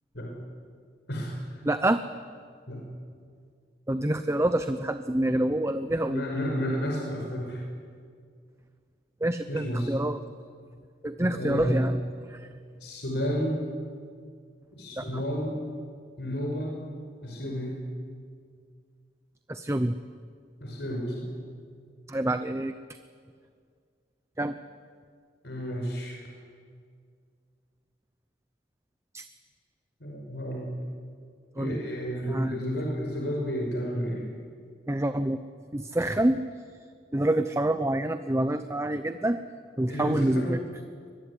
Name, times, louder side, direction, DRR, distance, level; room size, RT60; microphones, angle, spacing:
voice 1, 1.6-2.0 3.9-6.2 9.2-10.2 11.0-12.0 12.3-12.5 15.0-15.2 19.5-20.0 22.1-22.7 24.4-24.6 29.1-29.2 31.6-31.8 32.3-32.6 34.9-35.4 35.7-36.4 37.1-39.4 39.8-40.6, right 1 dB, 15° right, 10 dB, 0.7 m, -27 dB
voice 2, 6.1-7.6 9.5-9.9 11.3-11.9 12.8-13.6 14.7-15.5 16.2-16.8 17.2-17.8 20.6-21.3 25.4-26.2 30.0-30.8 31.6-34.3 39.9-40.5, equal, 70° left, 0 dB, 5.7 m, -31 dB
24.0 x 22.0 x 10.0 m, 2.1 s
head